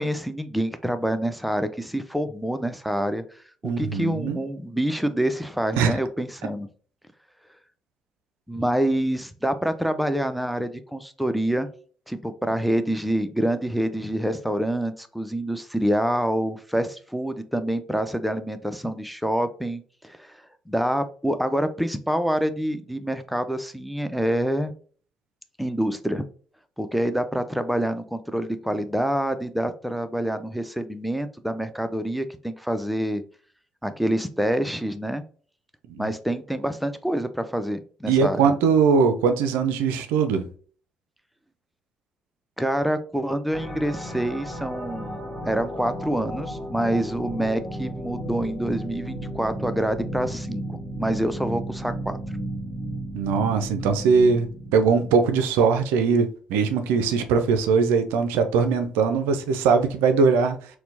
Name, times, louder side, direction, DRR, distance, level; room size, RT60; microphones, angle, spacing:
voice 1, 0.0-3.2 3.6-6.7 8.5-11.7 12.1-20.4 20.7-24.7 25.6-26.2 26.8-33.2 33.8-35.2 36.0-38.4 42.6-52.2, right 1 dB, ahead, 0.4 m, -26 dB
voice 2, 3.6-4.4 5.7-6.0 35.9-36.0 38.1-40.4 53.1-60.6, right 5 dB, 70° right, 0.4 m, -21 dB
sound 1, 43.5-55.3, right 1 dB, 30° left, 1.2 m, -34 dB
4.2 x 2.1 x 2.6 m
figure-of-eight pair, 45°, 4 cm